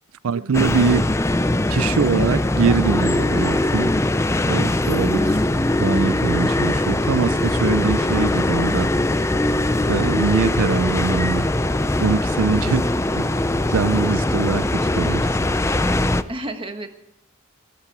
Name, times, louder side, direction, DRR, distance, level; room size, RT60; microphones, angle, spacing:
voice 1, 0.2-1.1 1.7-3.9 4.5-5.3 5.8-9.4 9.9-11.5 12.0-12.8 13.2-13.3 13.7-15.3, right 5 dB, 90° right, 0.5 m, -23 dB
sound 1, 0.5-16.2, left 1 dB, 15° left, 0.4 m, -21 dB
sound 2, 1.1-15.8, right 1 dB, 50° right, 4.5 m, -39 dB
voice 2, 12.6-13.2 16.3-16.9, right 1 dB, 25° right, 1.4 m, -33 dB
15.0 x 14.5 x 4.8 m
head